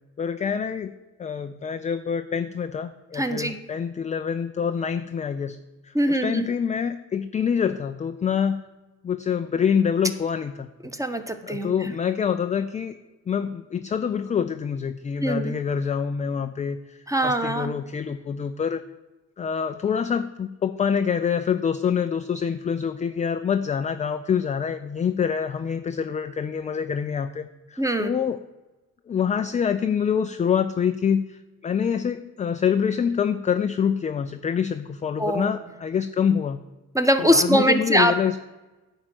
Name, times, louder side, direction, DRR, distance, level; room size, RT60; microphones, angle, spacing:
voice 1, 0.2-0.9 1.2-5.6 5.8-8.6 9.0-10.7 11.4-13.0 13.3-18.9 19.4-28.4 29.1-36.6 37.2-38.4, left 7 dB, 20° left, 8 dB, 0.3 m, -26 dB
voice 2, 3.1-3.6 5.9-6.5 10.8-11.9 15.2-15.5 17.1-17.7 27.8-28.1 35.2-35.5 36.9-38.4, equal, 5° right, 9 dB, 1.0 m, -22 dB
9.8 x 4.4 x 7.6 m, 1.1 s
hypercardioid pair, 45°, 47 cm